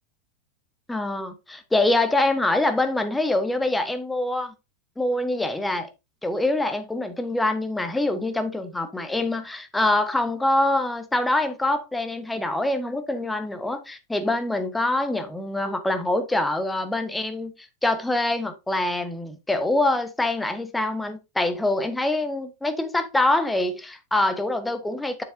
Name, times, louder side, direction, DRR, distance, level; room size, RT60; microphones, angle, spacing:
voice 1, 0.9-4.5 5.0-5.9 6.2-25.2, left 2 dB, 5° left, 1.1 m, -25 dB
7.0 x 7.0 x 2.7 m
figure-of-eight pair, 90°, 0 cm